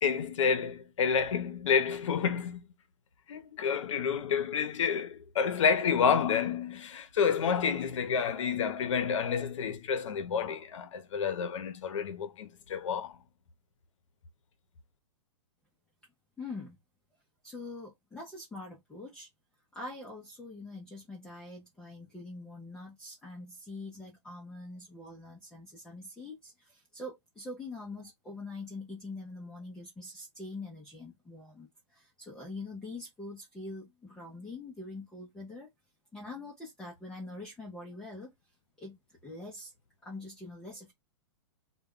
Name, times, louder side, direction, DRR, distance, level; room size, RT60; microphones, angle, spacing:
voice 1, 0.0-2.6 3.3-13.2, left 6 dB, 80° left, 0.6 m, -29 dB
voice 2, 16.4-16.8 17.4-19.3 19.7-35.7 36.1-38.3 38.8-39.7 40.0-40.9, left 2 dB, 5° left, 0.4 m, -44 dB
2.1 x 2.1 x 3.5 m
hypercardioid pair, 160°, 16 cm